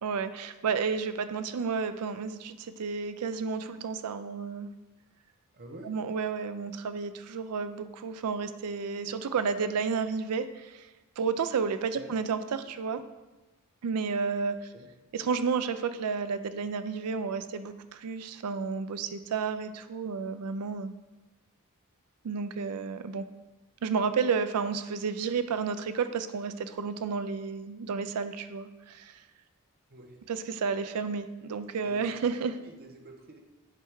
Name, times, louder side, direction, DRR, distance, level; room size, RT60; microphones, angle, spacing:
voice 1, 0.0-4.7 5.8-10.9 11.2-13.0 13.8-14.7 15.1-20.9 22.2-23.2 23.8-29.2 30.3-32.6, right 5 dB, 85° right, 11 dB, 0.4 m, -31 dB
voice 2, 5.5-5.9 11.9-12.1 14.7-14.9 29.9-30.2 31.8-32.0 32.6-33.4, right 1 dB, 45° right, 2 dB, 0.9 m, -48 dB
9.4 x 3.4 x 4.7 m, 1.1 s
head